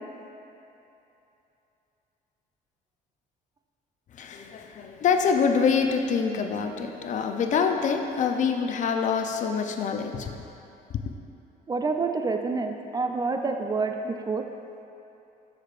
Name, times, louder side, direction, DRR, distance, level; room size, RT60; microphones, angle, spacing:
voice 1, 4.2-10.3 10.9-11.0, left 6 dB, 45° left, 5 dB, 0.5 m, -25 dB
voice 2, 11.7-14.4, right 4 dB, 25° right, 5 dB, 0.3 m, -28 dB
7.8 x 6.6 x 2.4 m, 2.9 s
cardioid pair, 110°, 17 cm